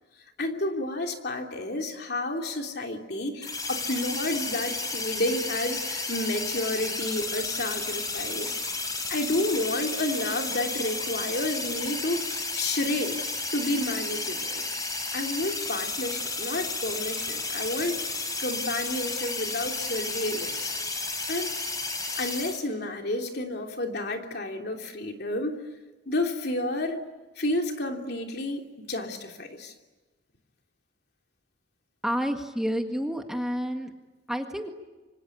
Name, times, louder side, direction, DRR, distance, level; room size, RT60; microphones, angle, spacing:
voice 1, 0.4-8.5 9.1-13.2 13.5-14.6 15.1-20.8 21.3-21.5 22.2-25.6 26.1-27.0 27.4-29.7, left 1 dB, 55° left, 3 dB, 3.1 m, -30 dB
sound 1, 3.4-22.6, left 3 dB, 20° left, 3.8 m, -32 dB
voice 2, 32.0-33.9 34.3-34.7, equal, 5° right, 4 dB, 1.7 m, -29 dB
26.5 x 25.5 x 8.5 m, 1.2 s
head